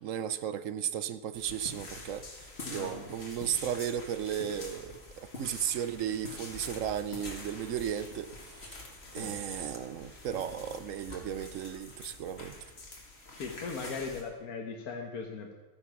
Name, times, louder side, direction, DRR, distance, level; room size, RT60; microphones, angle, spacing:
voice 1, 0.0-8.3 9.1-12.6, right 9 dB, 65° right, 0.9 m, -35 dB
sound 1, 1.3-14.2, left 2 dB, 45° left, 2.4 m, -46 dB
voice 2, 2.6-3.1 9.0-9.4 13.3-15.5, left 5 dB, 75° left, 1.6 m, -39 dB
13.5 x 9.8 x 6.0 m
omnidirectional pair, 1.6 m